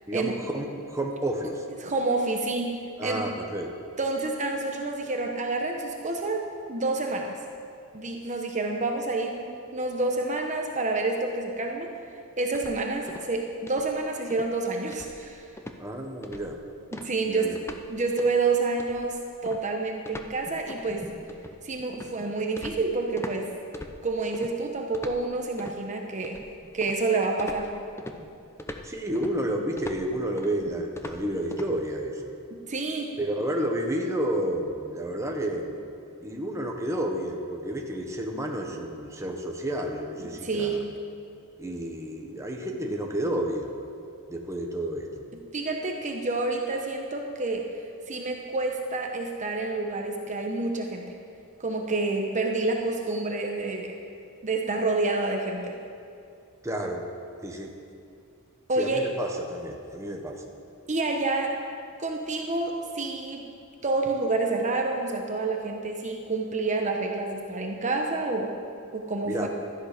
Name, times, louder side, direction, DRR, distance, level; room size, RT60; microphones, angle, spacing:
voice 1, 0.1-1.6 3.0-3.8 15.8-16.6 17.2-17.5 28.8-32.4 33.2-35.7 36.2-40.8 41.6-43.7 44.3-45.2 56.6-57.0 57.4-57.7 58.8-60.4 69.2-69.5, right 1 dB, 15° right, 1 dB, 1.3 m, -31 dB
voice 2, 1.8-2.7 3.0-3.3 4.0-6.4 6.7-7.3 7.9-11.9 12.4-15.5 16.9-21.1 21.6-23.5 24.0-26.4 26.7-27.7 32.5-33.2 40.2-40.8 45.5-47.8 48.1-51.0 51.6-53.9 54.4-55.7 58.7-59.1 60.9-61.6 62.0-63.5 63.8-68.5 68.9-69.5, right 3 dB, 35° right, 2 dB, 1.1 m, -28 dB
sound 1, 12.5-13.4 13.7-14.0 14.3-14.5 14.9-15.3 15.6-15.8 16.2-16.6 16.9-17.9 18.2-18.4 18.8-23.4 23.7-24.5 24.9-25.8 26.2-27.1 27.4-31.7, left 1 dB, 10° left, 0.7 m, -41 dB
17.0 x 13.0 x 5.1 m, 2.5 s
head